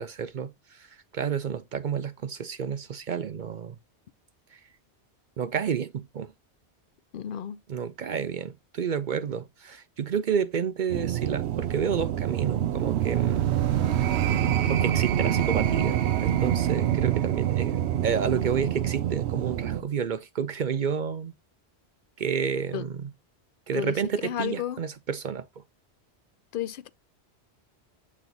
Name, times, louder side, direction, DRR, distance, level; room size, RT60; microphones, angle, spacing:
voice 1, 0.0-3.8 4.5-4.6 5.4-6.3 7.7-13.5 14.7-21.3 22.2-23.1 23.7-25.5, right 7 dB, 55° right, 0.6 m, -30 dB
voice 2, 7.1-7.6 22.7-22.9 23.7-24.8 26.5-26.9, left 10 dB, 60° left, 0.6 m, -32 dB
sound 1, 10.9-19.8, right 11 dB, 75° right, 0.9 m, -26 dB
8.7 x 3.1 x 3.9 m
omnidirectional pair, 1.2 m